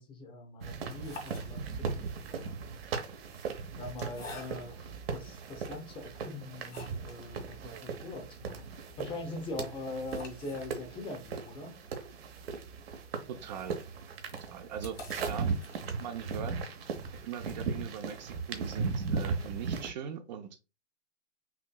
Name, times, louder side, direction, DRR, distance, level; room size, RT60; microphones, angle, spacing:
voice 1, 0.0-2.5 3.8-8.7 9.0-11.8, left 2 dB, 15° left, 0.8 m, -42 dB
sound 1, 0.6-19.9, right 5 dB, 55° right, 0.9 m, -38 dB
sound 2, 0.9-2.0 2.8-4.9 5.5-5.6 6.1-7.2 7.6-7.7 7.9-8.0 8.4-16.3, left 2 dB, 85° left, 1.9 m, -50 dB
voice 2, 13.3-13.8 14.5-15.0 15.3-15.5 16.0-16.5 17.2-20.6, right 8 dB, 40° right, 0.6 m, -40 dB
5.8 x 2.6 x 2.2 m
figure-of-eight pair, 120°, 36 cm